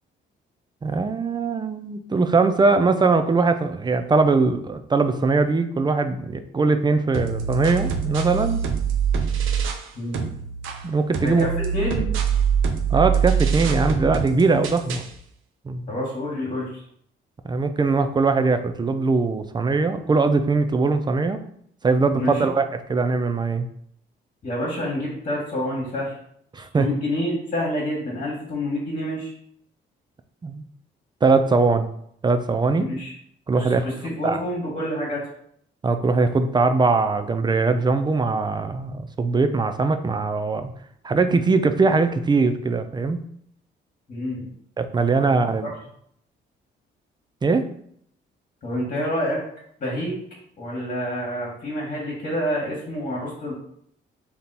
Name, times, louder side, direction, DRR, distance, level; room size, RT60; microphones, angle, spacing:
voice 1, 0.8-8.6 10.8-11.5 12.9-15.0 15.7-15.9 17.4-21.4 21.8-22.6 22.9-23.7 26.5-26.9 30.4-30.6 31.2-31.9 32.2-32.9 33.5-33.9 34.2-34.4 35.8-40.7 41.0-43.2 44.8-45.7 47.4-47.7, right 4 dB, 20° right, 9 dB, 0.4 m, -21 dB
sound 1, 7.1-9.9 10.1-15.1, right 6 dB, 85° right, 0.6 m, -24 dB
voice 2, 9.9-10.3 11.2-12.1 15.9-16.8 22.1-22.5 24.4-26.1 26.8-29.3 32.9-33.1 33.5-35.2 44.1-44.5 45.6-45.7 48.6-49.4 49.8-50.1 50.6-53.5, left 1 dB, 45° left, -5 dB, 1.5 m, -28 dB
3.6 x 2.9 x 4.0 m, 0.68 s
cardioid pair, 90°, 20 cm